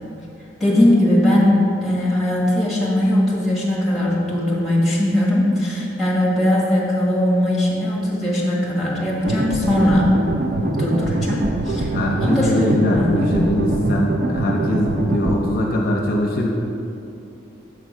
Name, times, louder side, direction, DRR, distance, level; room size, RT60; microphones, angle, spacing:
voice 1, 0.6-1.5 1.8-10.0 10.6-11.9 12.2-13.4, left 1 dB, ahead, -6 dB, 1.4 m, -19 dB
sound 1, 9.2-15.4, right 2 dB, 50° right, 0.4 m, -24 dB
voice 2, 11.9-16.5, left 1 dB, 50° left, -1 dB, 0.6 m, -21 dB
6.9 x 3.7 x 6.1 m, 2.8 s
head